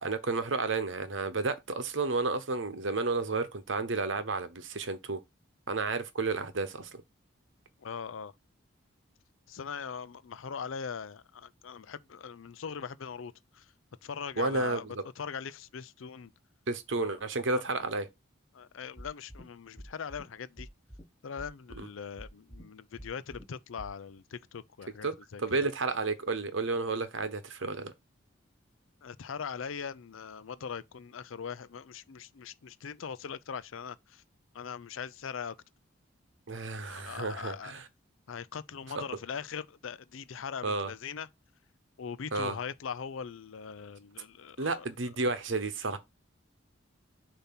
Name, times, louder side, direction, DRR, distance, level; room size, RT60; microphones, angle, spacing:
voice 1, 0.0-5.2 5.7-7.0 14.4-14.9 16.7-18.1 21.8-21.9 25.0-25.1 25.4-27.9 36.5-37.9 39.0-39.1 40.6-40.9 42.3-42.6 44.6-46.0, right 3 dB, 70° right, 0.9 m, -31 dB
voice 2, 7.8-8.3 9.5-13.7 14.0-14.9 15.2-16.3 16.9-17.2 17.5-17.6 18.5-20.7 21.2-25.4 29.0-34.2 34.5-35.6 36.8-37.7 38.3-41.3 42.0-44.9, left 6 dB, 80° left, 0.5 m, -41 dB
sound 1, 19.0-19.4 19.8-20.2 20.6-21.0 21.4-21.8 22.2-22.6 23.0-23.4 23.8-23.9, equal, 5° left, 1.3 m, -46 dB
6.9 x 2.9 x 5.8 m
head